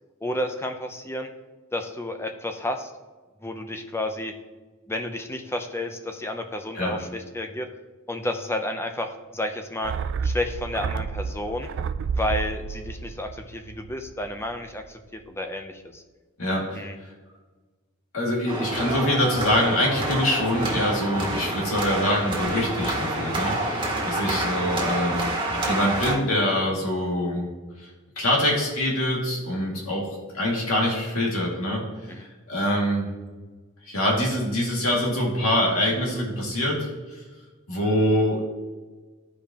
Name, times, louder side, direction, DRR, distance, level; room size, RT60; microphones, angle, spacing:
voice 1, 0.2-1.3 1.7-2.9 3.4-4.3 4.9-7.7 8.1-9.9 10.2-11.7 12.2-16.0 16.7-17.0 32.1-32.3, left 1 dB, 10° left, 6 dB, 0.6 m, -31 dB
sound 1, 9.8-14.4 14.7-14.8, right 5 dB, 60° right, 0.3 m, -30 dB
voice 2, 16.4-16.9 18.1-25.3 25.7-27.5 27.8-27.9 28.2-30.1 30.3-33.1 33.8-37.2 37.7-38.4, left 1 dB, 70° left, -2 dB, 2.3 m, -24 dB
sound 2, 18.5-26.1, right 2 dB, 20° right, 1.6 m, -28 dB
13.0 x 5.0 x 3.0 m, 1.3 s
head